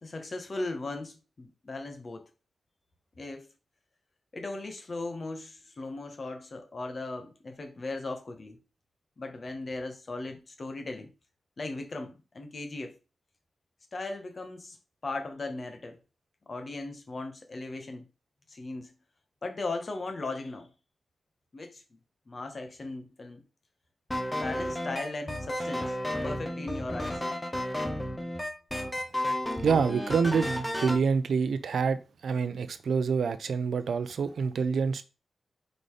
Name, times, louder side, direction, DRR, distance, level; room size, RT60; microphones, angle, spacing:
voice 1, 0.0-2.2 3.2-3.5 4.3-8.6 9.2-11.1 11.6-13.0 13.9-14.8 15.0-16.0 16.4-18.1 18.5-18.9 19.4-20.7 21.5-22.0 22.3-23.4 24.3-26.0 26.2-27.2, left 2 dB, 40° left, 1.4 m, -37 dB
sound 1, 24.1-31.0, left 1 dB, 15° left, 0.8 m, -32 dB
voice 2, 29.6-35.0, right 5 dB, 90° right, 0.5 m, -27 dB
5.2 x 4.1 x 4.8 m
wide cardioid pair, 125°, 0 cm